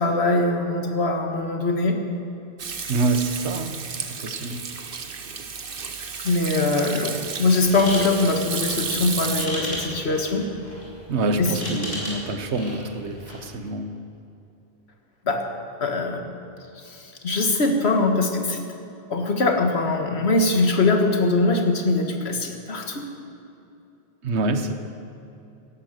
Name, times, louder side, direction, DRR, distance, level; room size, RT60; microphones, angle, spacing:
voice 1, 0.0-2.0 6.2-10.5 11.4-11.5 15.3-15.4 15.8-16.3 16.9-18.6 19.1-23.1, left 2 dB, 70° left, 4 dB, 1.8 m, -22 dB
Hands / Sink (filling or washing), 2.6-9.5, right 6 dB, 55° right, 1.1 m, -32 dB
voice 2, 2.9-4.7 11.1-14.0 24.2-24.7, right 3 dB, 80° right, 8 dB, 1.3 m, -26 dB
sound 1, 7.6-13.5, left 1 dB, 40° left, 3.9 m, -35 dB
17.0 x 11.5 x 6.5 m, 2.8 s
omnidirectional pair, 1.1 m